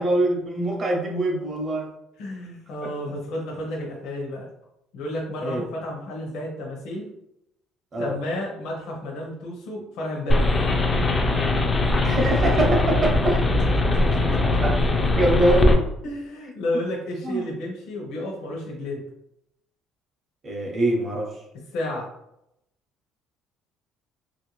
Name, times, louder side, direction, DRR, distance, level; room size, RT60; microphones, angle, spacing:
voice 1, 0.0-1.9 2.8-2.9 5.4-5.6 7.9-8.1 12.0-13.4 14.6-14.7 15.1-15.9 17.2-17.5 20.4-21.3, right 1 dB, 30° right, 0 dB, 0.7 m, -23 dB
voice 2, 2.2-4.5 4.9-7.0 8.0-10.5 13.8-14.6 16.0-19.0 21.7-22.1, left 1 dB, 65° left, -1 dB, 0.7 m, -32 dB
sound 1, 10.3-15.7, left 2 dB, 20° left, 0.4 m, -21 dB
3.0 x 2.5 x 3.0 m, 0.81 s
cardioid pair, 160°, 0 cm